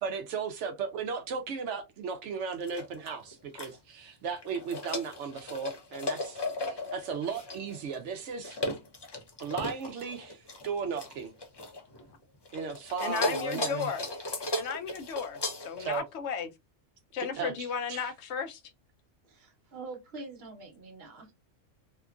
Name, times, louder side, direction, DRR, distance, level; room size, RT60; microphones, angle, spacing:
voice 1, 0.0-8.6 9.4-11.3 12.5-13.9 15.8-16.0 17.4-17.5 17.9-18.1, right 6 dB, 70° right, 0.9 m, -36 dB
sound 1, 2.5-3.8 4.3-12.1 12.5-16.0, left 2 dB, 45° left, 0.3 m, -36 dB
voice 2, 13.0-14.0 14.5-16.5 17.1-18.6, left 7 dB, 70° left, 0.8 m, -34 dB
voice 3, 19.3-21.3, right 3 dB, 55° right, 1.2 m, -45 dB
2.8 x 2.4 x 2.3 m
omnidirectional pair, 1.3 m